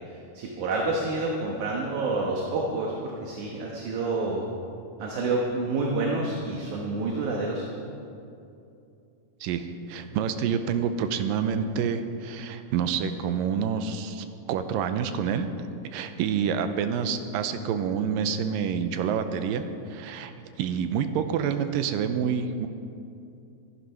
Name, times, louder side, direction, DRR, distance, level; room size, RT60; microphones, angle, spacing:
voice 1, 0.3-4.5 5.0-7.6, right 3 dB, 65° right, -1 dB, 2.5 m, -28 dB
voice 2, 9.4-15.5 15.9-19.6 19.9-20.3 20.6-22.7, right 7 dB, 85° right, 9 dB, 2.3 m, -28 dB
14.0 x 11.5 x 5.7 m, 2.6 s
omnidirectional pair, 4.1 m